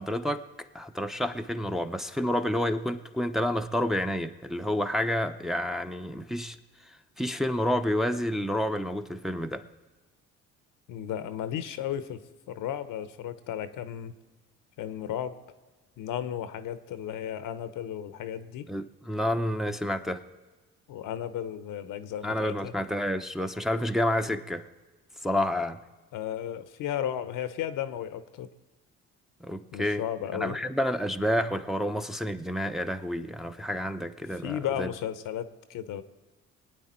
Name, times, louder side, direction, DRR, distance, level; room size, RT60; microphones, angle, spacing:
voice 1, 0.0-6.6 6.8-9.6 18.7-20.2 22.2-24.7 25.2-25.8 29.4-30.0 30.3-34.9, left 1 dB, ahead, 6 dB, 0.8 m, -29 dB
voice 2, 10.9-12.2 12.5-14.1 14.8-15.4 16.0-18.7 20.9-22.7 26.1-28.5 29.7-30.6 34.4-36.0, left 10 dB, 65° left, 12 dB, 0.9 m, -34 dB
22.5 x 8.8 x 4.4 m, 1.2 s
hypercardioid pair, 55°, 34 cm